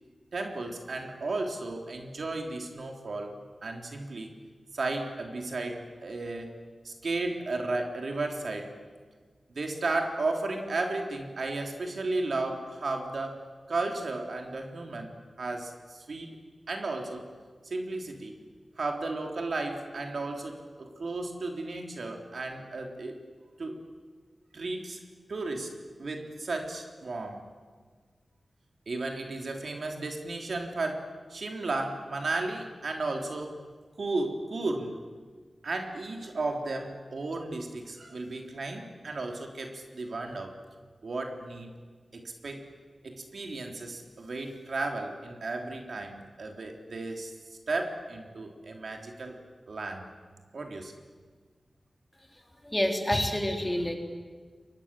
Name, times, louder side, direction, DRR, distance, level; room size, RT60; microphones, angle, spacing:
voice 1, 0.3-3.4 3.6-4.3 4.7-6.5 6.8-8.7 9.5-13.4 13.7-16.4 16.7-17.2 17.6-18.4 18.8-23.1 23.6-23.8 24.5-25.0 25.3-25.7 26.0-27.5 28.9-33.6 34.0-35.0 35.6-40.5 41.0-41.7 42.1-42.6 43.0-47.3 47.7-49.3 49.7-50.1 50.5-50.9, right 2 dB, 65° right, 3 dB, 3.4 m, -34 dB
voice 2, 52.6-53.9, left 1 dB, 10° left, 2 dB, 3.8 m, -27 dB
30.0 x 23.5 x 7.6 m, 1.5 s
wide cardioid pair, 105°, 0 cm